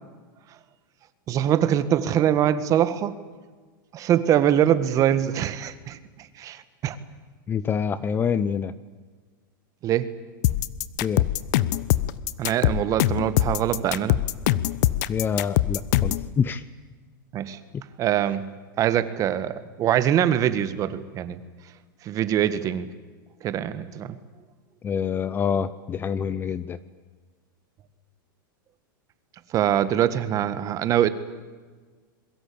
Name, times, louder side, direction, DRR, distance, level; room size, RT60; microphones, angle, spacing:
voice 1, 1.3-3.1 3.9-7.0 9.8-10.1 12.4-14.2 17.3-17.6 18.0-18.5 18.8-21.4 22.0-22.9 23.4-24.2 29.5-31.1, right 10 dB, 30° right, 13 dB, 1.8 m, -23 dB
voice 2, 7.5-8.7 11.0-11.2 15.1-16.6 24.8-26.8, left 7 dB, 20° left, 16 dB, 0.8 m, -26 dB
sound 1, 10.4-16.3, left 14 dB, 55° left, 1.1 m, -22 dB
27.5 x 22.5 x 8.7 m, 1.4 s
supercardioid pair, 145°, 11 cm